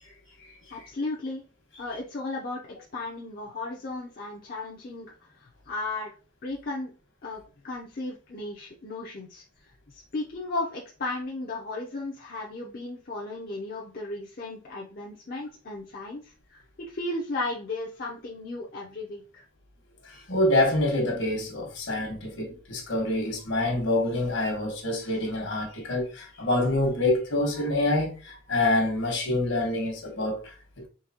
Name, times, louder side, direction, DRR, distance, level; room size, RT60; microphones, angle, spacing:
voice 1, 0.7-1.4 1.8-6.1 6.4-6.9 7.2-19.4, left 2 dB, 45° left, 0.6 m, -35 dB
voice 2, 20.0-30.9, left 1 dB, 70° left, 1.3 m, -26 dB
3.9 x 2.8 x 2.8 m
head